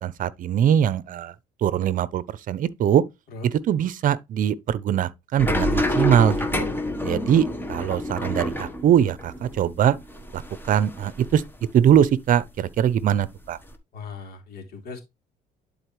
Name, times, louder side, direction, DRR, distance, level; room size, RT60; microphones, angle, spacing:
voice 1, 0.0-1.3 1.6-3.0 3.4-6.7 7.0-10.0 10.3-10.4 10.7-11.4 11.7-13.6, right 9 dB, 50° right, 0.7 m, -22 dB
sound 1, 5.4-12.1 12.4-13.8, left 1 dB, 10° left, 1.1 m, -28 dB
voice 2, 13.9-15.0, left 4 dB, 65° left, 2.9 m, -38 dB
11.0 x 4.2 x 3.1 m
cardioid pair, 110°, 17 cm